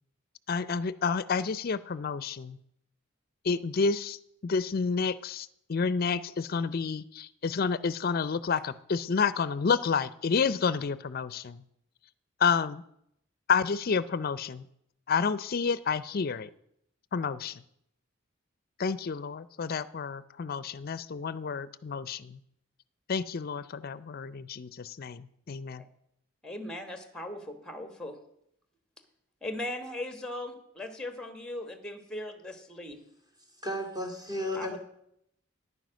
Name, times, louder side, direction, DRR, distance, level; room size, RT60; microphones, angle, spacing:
voice 1, 0.5-2.6 3.4-4.2 4.4-11.6 12.4-12.8 13.5-14.7 15.1-16.5 17.1-17.6 18.8-22.4 23.1-25.8, left 5 dB, 50° left, 17 dB, 0.5 m, -30 dB
voice 2, 26.4-28.2 29.4-33.0 34.5-34.8, left 1 dB, 5° left, 9 dB, 1.2 m, -38 dB
voice 3, 33.6-34.8, left 1 dB, 20° right, 2 dB, 2.2 m, -33 dB
9.9 x 9.2 x 6.3 m, 0.75 s
head